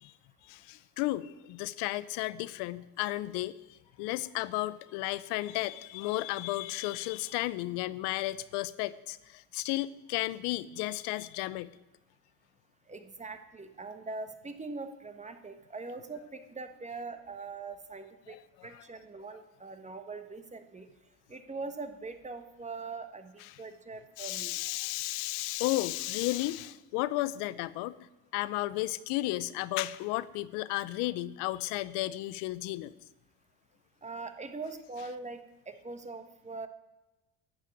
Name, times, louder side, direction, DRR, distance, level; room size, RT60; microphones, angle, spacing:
voice 1, 0.5-11.7 18.3-18.8 23.4-23.6 24.2-27.9 28.3-32.9, left 17 dB, 80° left, 18 dB, 0.7 m, -33 dB
voice 2, 12.9-18.4 18.6-20.9 21.3-24.6 34.0-35.4 35.7-36.7, right 3 dB, 15° right, 8 dB, 1.3 m, -42 dB
11.5 x 7.5 x 9.3 m, 1.0 s
supercardioid pair, 100°, 40 cm